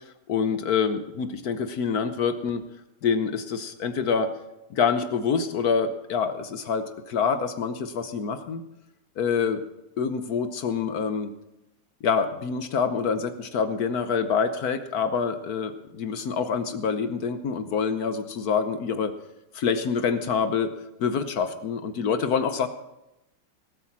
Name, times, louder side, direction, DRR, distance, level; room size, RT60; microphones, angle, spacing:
voice 1, 0.3-2.7 3.0-4.3 4.7-8.6 9.2-9.6 10.0-11.3 12.0-19.1 19.5-20.7 21.0-22.7, left 6 dB, 60° left, 9 dB, 1.2 m, -26 dB
18.0 x 8.4 x 6.1 m, 0.92 s
omnidirectional pair, 2.1 m